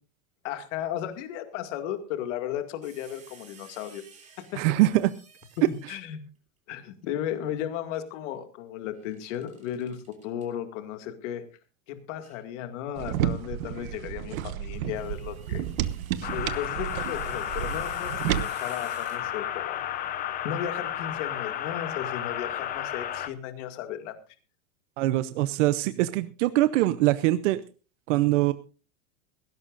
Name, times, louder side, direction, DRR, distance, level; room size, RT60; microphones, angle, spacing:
voice 1, 0.4-4.0 5.9-6.2 6.7-11.4 11.9-15.6 16.3-19.8 20.2-24.2, left 10 dB, 60° left, 7 dB, 2.2 m, -35 dB
sound 1, 2.8-6.1 9.0-10.5 12.2-12.4 14.5-19.7, right 5 dB, 20° right, 3.0 m, -53 dB
voice 2, 4.6-5.1 25.0-27.6 28.1-28.5, right 16 dB, 65° right, 13 dB, 0.8 m, -23 dB
sound 2, 13.0-18.4, right 11 dB, 85° right, 1.2 m, -31 dB
sound 3, 16.2-23.3, left 11 dB, 20° left, 0.7 m, -32 dB
19.0 x 17.0 x 2.5 m, 0.35 s
supercardioid pair, 165°, 40 cm